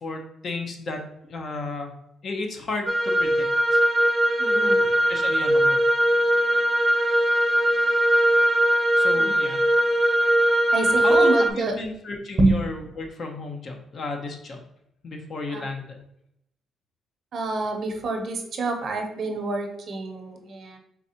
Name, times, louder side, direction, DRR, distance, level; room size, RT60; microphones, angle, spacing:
voice 1, 0.0-1.9 2.2-3.8 5.1-5.8 8.9-9.6 11.0-14.6 15.0-16.0, left 3 dB, 50° left, 3 dB, 0.7 m, -33 dB
sound 1, 2.9-11.5, right 1 dB, 5° right, 0.4 m, -20 dB
voice 2, 4.4-4.9 9.2-9.4 10.7-11.8 12.4-12.6 15.5-15.6 17.3-20.8, right 2 dB, 55° right, 3 dB, 0.7 m, -26 dB
4.0 x 3.2 x 2.9 m, 0.77 s
cardioid pair, 90°, 0 cm